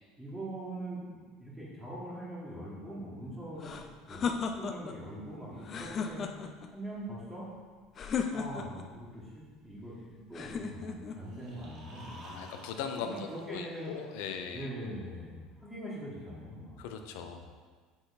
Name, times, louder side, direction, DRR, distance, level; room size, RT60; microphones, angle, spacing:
voice 1, 0.2-1.0 1.4-6.2 6.7-7.5 8.3-12.4 13.0-13.9 14.5-16.8 17.1-17.3, right 1 dB, 5° right, -12 dB, 1.7 m, -42 dB
sound 1, 3.6-5.0 5.6-6.7 8.0-8.9 10.3-11.2, left 6 dB, 40° left, 0.5 m, -35 dB
sound 2, 11.2-14.3, right 1 dB, 60° right, 1.6 m, -52 dB
voice 2, 12.2-14.7 16.8-17.6, left 6 dB, 80° left, 6 dB, 0.6 m, -39 dB
7.8 x 4.0 x 4.2 m, 1.5 s
supercardioid pair, 115°, 0 cm